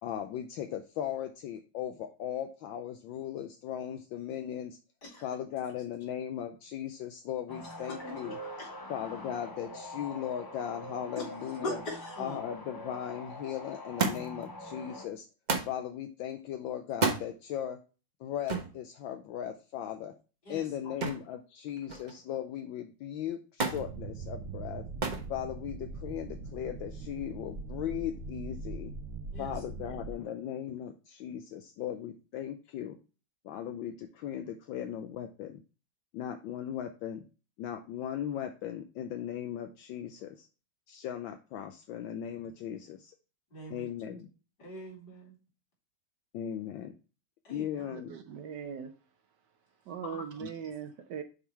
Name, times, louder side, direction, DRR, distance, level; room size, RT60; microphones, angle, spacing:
voice 1, 0.0-4.8 5.2-8.4 8.9-11.8 12.2-15.3 15.7-17.8 18.2-20.1 20.5-24.8 25.3-28.9 29.4-33.0 33.4-35.6 36.1-37.2 37.6-40.5 40.9-43.1 43.7-44.3 46.3-46.9 47.5-48.1 50.4-50.5, left 10 dB, 75° left, 7 dB, 1.3 m, -38 dB
sound 1, 7.5-15.1, left 1 dB, 25° left, 0.5 m, -44 dB
voice 2, 7.8-8.7 11.2-11.3 11.6-12.4 20.4-20.9 29.3-29.9 43.5-44.2 44.6-45.4 47.4-47.6 50.1-50.2, left 1 dB, 55° left, -3 dB, 4.3 m, -42 dB
Thump thud, 14.0-14.5 15.5-15.8 16.9-17.3 18.5-18.7 21.0-21.3 21.7-22.2 23.6-23.9 25.0-25.3 26.2-26.7 27.7-27.8, right 4 dB, 35° right, 0.7 m, -31 dB
sound 2, 23.7-30.1, right 4 dB, 85° right, 1.6 m, -41 dB
voice 3, 47.8-48.9 49.9-51.2, right 7 dB, 65° right, 7 dB, 1.2 m, -40 dB
7.2 x 3.7 x 4.4 m, 0.34 s
omnidirectional pair, 2.2 m